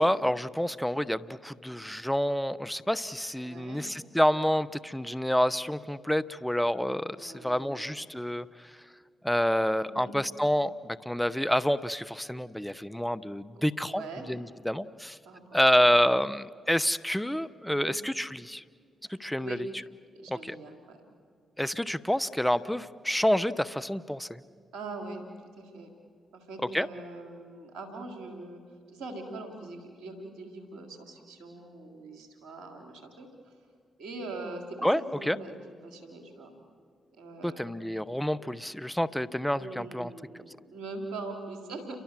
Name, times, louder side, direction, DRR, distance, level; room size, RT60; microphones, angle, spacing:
voice 1, 0.0-8.5 9.2-14.0 14.3-15.2 15.5-18.6 19.2-19.6 20.3-20.6 21.6-24.4 26.7-26.9 34.8-35.4 37.4-40.1, equal, 5° left, 15 dB, 1.0 m, -28 dB
voice 2, 3.4-3.9 7.2-8.0 9.8-10.1 13.5-14.3 15.2-16.0 17.7-17.9 19.0-19.6 20.1-21.0 24.7-25.3 25.6-25.9 26.3-28.6 28.9-33.6 34.0-36.5 37.2-37.7 39.5-42.0, right 2 dB, 80° right, 5 dB, 3.6 m, -42 dB
30.0 x 23.5 x 7.6 m, 2.1 s
hypercardioid pair, 40°, 0 cm